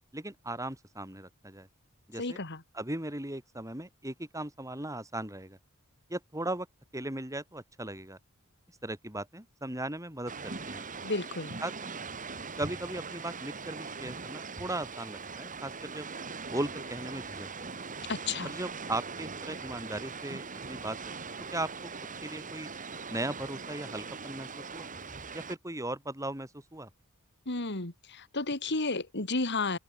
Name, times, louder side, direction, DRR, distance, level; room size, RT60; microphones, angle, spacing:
voice 1, 0.1-1.7 2.1-2.4 2.7-5.6 6.1-6.7 6.9-8.2 8.8-10.9 11.6-11.9 12.6-16.1 16.5-17.7 18.4-21.0 21.5-21.7 22.2-22.7 23.1-24.9 25.3-26.9, right 1 dB, 15° right, 7.4 m, -37 dB
voice 2, 2.2-2.6 11.0-11.6 18.1-18.5 27.5-29.8, left 3 dB, 55° left, 3.1 m, -32 dB
sound 1, 10.3-25.5, right 4 dB, 35° right, 2.8 m, -41 dB
open air
head